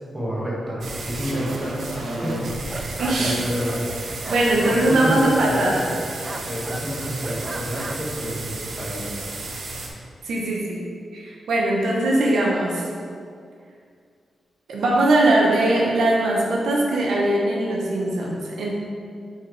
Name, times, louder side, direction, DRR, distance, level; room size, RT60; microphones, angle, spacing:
voice 1, 0.1-1.8 2.2-2.9 3.2-3.9 4.7-5.9 6.4-9.2, equal, 10° right, -7 dB, 1.7 m, -29 dB
sound 1, 0.8-9.9, right 2 dB, 60° right, 0.9 m, -32 dB
sound 2, 2.4-6.0 6.2-6.8 7.2-8.1, right 2 dB, 25° right, 0.4 m, -36 dB
voice 2, 3.0-3.4 4.3-5.8 10.2-10.8 11.1-12.9 14.7-18.7, right 1 dB, 85° right, -3 dB, 1.1 m, -21 dB
8.7 x 4.4 x 3.4 m, 2.2 s
wide cardioid pair, 140°, 0 cm